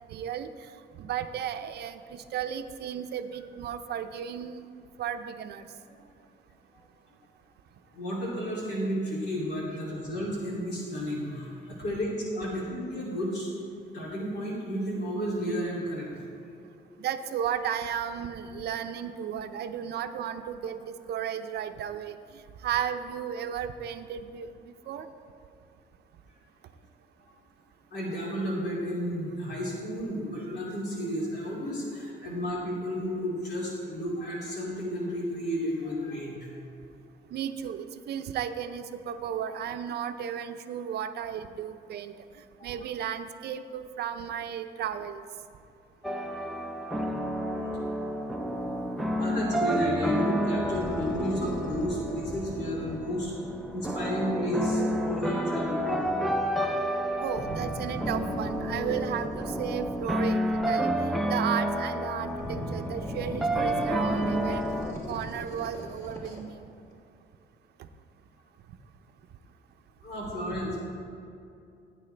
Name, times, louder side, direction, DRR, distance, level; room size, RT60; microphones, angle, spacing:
voice 1, 0.1-0.5 1.0-4.6 5.0-5.7 17.0-22.2 22.6-25.1 37.3-42.1 42.6-45.2 57.2-64.8 65.1-66.6, right 9 dB, 65° right, 9 dB, 0.6 m, -34 dB
voice 2, 7.9-13.5 13.9-16.2 27.9-36.5 46.6-47.0 47.4-48.2 49.1-53.3 53.7-56.1 70.0-70.8, equal, 65° left, -4 dB, 2.8 m, -32 dB
sound 1, 46.0-64.9, equal, ahead, 0.5 m, -30 dB
sound 2, 50.6-54.0 57.1-60.7 61.2-61.8 62.2-66.6 66.9-67.0, equal, 20° left, 1.7 m, -38 dB
15.5 x 9.1 x 3.3 m, 2.6 s
cardioid pair, 170°, 19 cm